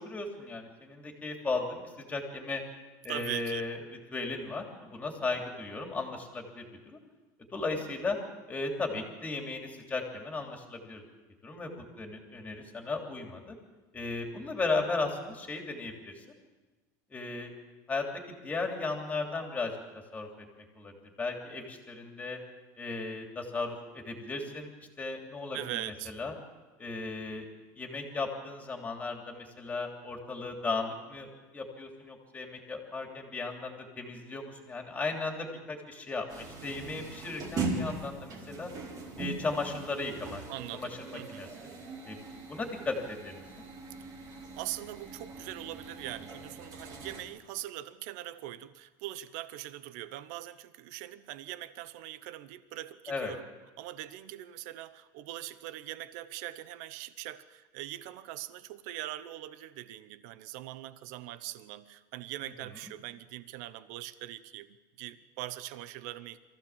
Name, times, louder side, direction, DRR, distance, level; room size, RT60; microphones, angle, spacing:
voice 1, 0.0-2.6 3.0-3.8 4.1-7.0 7.5-8.2 8.5-11.0 11.4-13.6 13.9-16.2 17.1-17.5 17.9-19.8 20.1-22.4 22.8-25.8 26.1-26.3 26.8-27.4 27.8-38.7 39.2-40.4 40.7-41.5 42.1-42.2 42.5-43.6 53.1-53.3, left 3 dB, 15° left, 2 dB, 3.1 m, -36 dB
voice 2, 3.1-3.6 25.5-26.1 40.5-41.6 44.0-53.4 53.8-66.4, right 14 dB, 70° right, 14 dB, 0.9 m, -42 dB
sound 1, 36.3-47.2, right 3 dB, 40° right, 4.3 m, -40 dB
23.5 x 15.0 x 7.3 m, 1.2 s
supercardioid pair, 145°, 9 cm